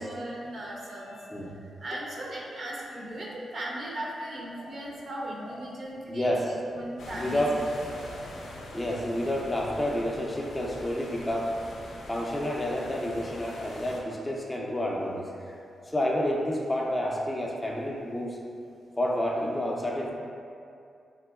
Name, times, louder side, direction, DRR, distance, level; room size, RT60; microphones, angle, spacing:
voice 1, 0.0-1.2 1.6-6.3 6.7-7.4 8.0-8.2, right 1 dB, 55° right, -3 dB, 0.6 m, -37 dB
voice 2, 1.0-1.6 1.9-2.2 4.6-5.1 5.5-5.8 6.1-6.6 7.1-7.6 7.9-15.6 15.8-18.4 19.0-20.1, left 1 dB, 15° left, -2 dB, 0.4 m, -30 dB
sound 1, 7.0-14.0, left 1 dB, 85° left, 0.4 m, -43 dB
3.4 x 3.0 x 2.2 m, 2.4 s
cardioid pair, 85°, 0 cm